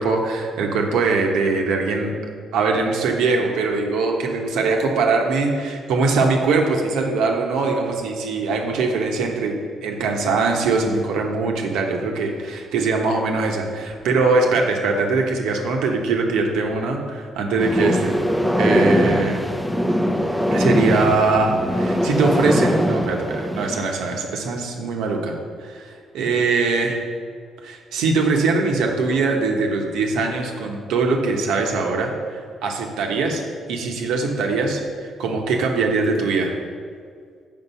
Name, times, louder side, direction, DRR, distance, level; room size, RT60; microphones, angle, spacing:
voice 1, 0.0-2.1 2.5-18.2 18.6-19.4 20.5-25.9 26.1-27.0 27.6-33.4 33.7-34.8 35.2-36.5, right 3 dB, 90° right, 2 dB, 1.1 m, -22 dB
sound 1, 17.6-24.0, equal, ahead, 0.6 m, -21 dB
7.3 x 5.4 x 5.6 m, 2.1 s
cardioid pair, 90°, 0 cm